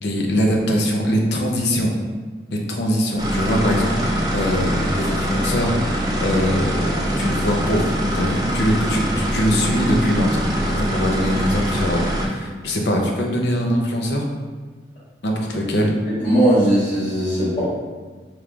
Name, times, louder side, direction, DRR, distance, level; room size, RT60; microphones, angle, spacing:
voice 1, 0.0-1.9 2.5-6.9 7.1-14.2 15.2-15.9, equal, 80° left, 0 dB, 0.7 m, -22 dB
sound 1, 3.2-12.3, equal, 20° right, 0.5 m, -23 dB
voice 2, 16.2-17.6, right 1 dB, 45° left, -15 dB, 1.4 m, -18 dB
5.1 x 3.0 x 2.4 m, 1.4 s
head